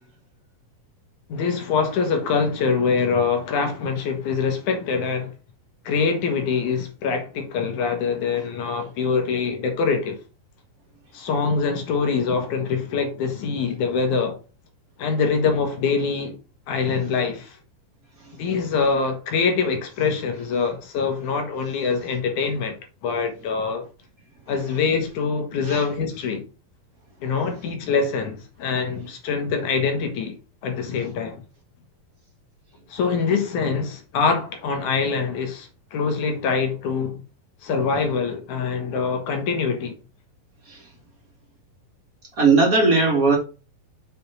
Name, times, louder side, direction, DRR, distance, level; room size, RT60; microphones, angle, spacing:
voice 1, 1.3-5.3 5.8-10.2 11.1-14.4 15.0-16.4 16.7-17.6 18.4-22.8 23.0-23.9 24.5-26.4 27.2-30.4 30.6-31.4 32.9-37.2 37.6-40.0, left 5 dB, 65° left, 2.5 m, -24 dB
voice 2, 42.4-43.4, right 4 dB, 30° right, 2.2 m, -17 dB
6.9 x 5.2 x 4.0 m
omnidirectional pair, 4.2 m